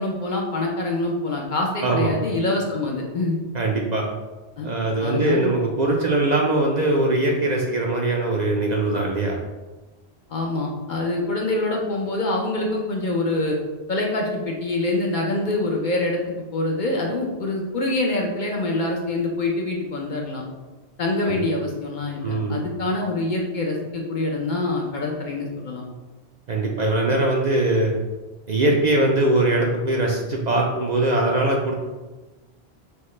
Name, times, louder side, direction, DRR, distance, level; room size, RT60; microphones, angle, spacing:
voice 1, 0.0-3.4 4.6-4.7 5.0-5.5 10.3-13.6 13.9-16.2 16.5-20.4 21.0-25.8, left 2 dB, 55° left, 0 dB, 0.7 m, -25 dB
voice 2, 1.8-2.2 3.5-4.1 4.6-9.4 21.2-21.4 22.2-22.6 26.5-27.9 28.5-31.7, right 2 dB, 55° right, -1 dB, 0.5 m, -21 dB
6.3 x 2.1 x 3.1 m, 1.2 s
omnidirectional pair, 1.1 m